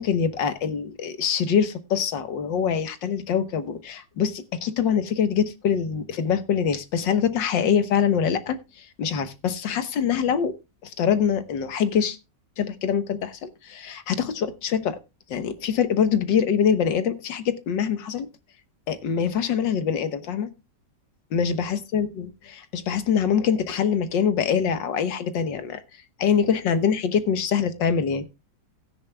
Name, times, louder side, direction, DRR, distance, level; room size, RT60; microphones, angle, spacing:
voice 1, 0.0-10.5 10.8-12.2 12.6-15.0 15.3-18.3 18.9-20.5 21.3-25.8 26.2-28.2, left 7 dB, 90° left, 11 dB, 1.9 m, -24 dB
17.0 x 9.5 x 2.2 m, 0.26 s
omnidirectional pair, 1.9 m